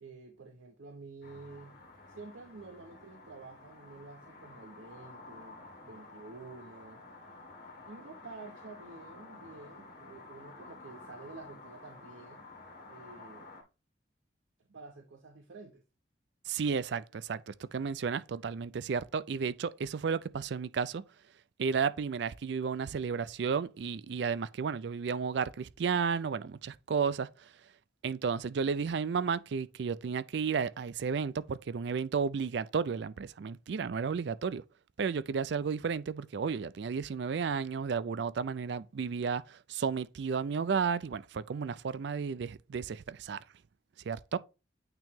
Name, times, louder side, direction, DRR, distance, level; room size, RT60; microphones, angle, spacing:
voice 1, 0.0-1.8 2.1-7.1 7.9-12.5 12.9-13.5 14.7-15.8, right 3 dB, 85° right, 0.8 m, -50 dB
sound 1, 1.2-13.6, left 3 dB, 50° left, 1.7 m, -51 dB
voice 2, 16.5-21.0 21.6-27.5 28.0-34.6 35.0-43.4 44.1-44.4, right 6 dB, 65° right, 0.4 m, -33 dB
8.9 x 3.0 x 3.6 m
head